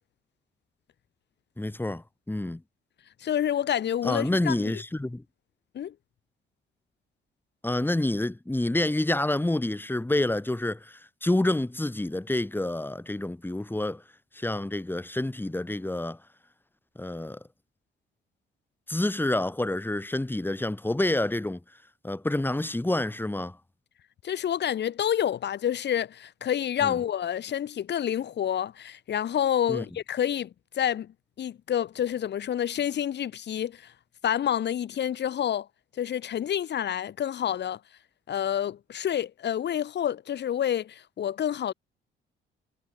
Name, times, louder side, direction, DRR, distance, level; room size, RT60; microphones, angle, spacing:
voice 1, 1.6-2.6 4.0-5.2 7.6-14.0 14.3-16.2 17.0-17.4 18.9-21.6 22.0-23.6 26.8-27.0 29.7-29.8, left 1 dB, 10° left, 4.3 m, -28 dB
voice 2, 3.2-4.7 5.7-5.9 24.2-31.1 31.4-33.9 34.2-35.7 36.0-37.8 38.3-41.7, left 10 dB, 60° left, 1.8 m, -28 dB
cardioid pair, 90°, 20 cm